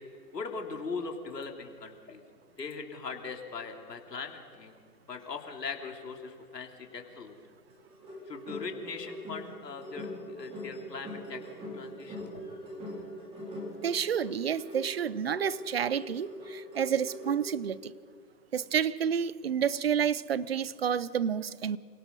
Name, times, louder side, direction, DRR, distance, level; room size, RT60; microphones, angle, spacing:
voice 1, 0.3-2.2 2.6-4.8 5.1-7.4 8.3-11.4 11.7-12.3, left 4 dB, 85° left, 3.5 m, -40 dB
sound 1, 7.7-17.5, equal, 10° right, 3.3 m, -42 dB
voice 2, 13.8-17.9 18.5-21.8, right 8 dB, 40° right, 0.5 m, -30 dB
28.0 x 18.0 x 5.4 m
hypercardioid pair, 155°, 48 cm